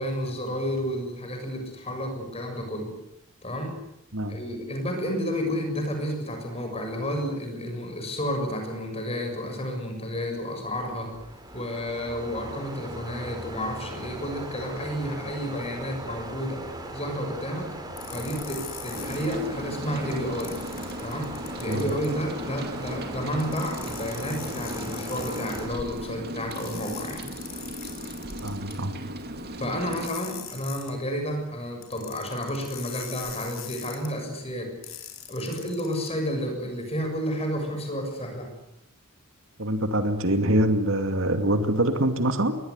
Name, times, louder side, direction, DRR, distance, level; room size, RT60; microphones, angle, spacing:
voice 1, 0.0-2.9 3.4-3.8 4.3-11.1 11.5-16.6 16.9-17.7 18.1-20.6 21.0-27.3 29.6-35.0 35.3-38.5, equal, 30° left, 4 dB, 6.7 m, -31 dB
sound 1, 10.6-25.7, right 1 dB, 20° right, 4.0 m, -39 dB
sound 2, 18.0-19.3 20.4-22.1 23.4-25.6 26.5-28.7 29.9-30.9 31.8-34.1 34.8-36.1, left 10 dB, 65° left, 5.0 m, -41 dB
Rain, 18.9-30.1, equal, 45° right, 2.3 m, -37 dB
voice 2, 28.4-28.9 39.6-42.6, right 1 dB, 65° right, 7 dB, 2.5 m, -24 dB
22.0 x 20.0 x 9.8 m, 0.84 s
head